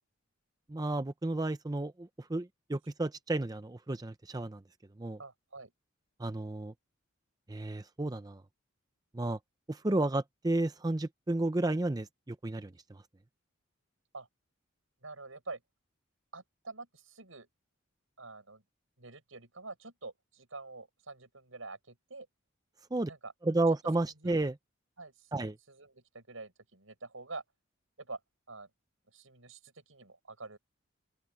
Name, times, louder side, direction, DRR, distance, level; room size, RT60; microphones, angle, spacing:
voice 1, 0.7-4.6 5.0-5.2 6.2-6.7 7.5-8.4 9.1-9.4 9.7-13.0 22.9-23.1 23.4-24.5 25.3-25.6, right 2 dB, 20° right, 0.5 m, -32 dB
voice 2, 5.2-5.7 14.1-14.3 15.0-15.6 16.3-17.5 18.2-18.6 19.0-22.3 23.1-23.3 24.2-24.4 25.0-27.4 28.0-28.2 28.5-28.7 29.1-30.6, right 3 dB, 75° right, 5.8 m, -47 dB
open air
head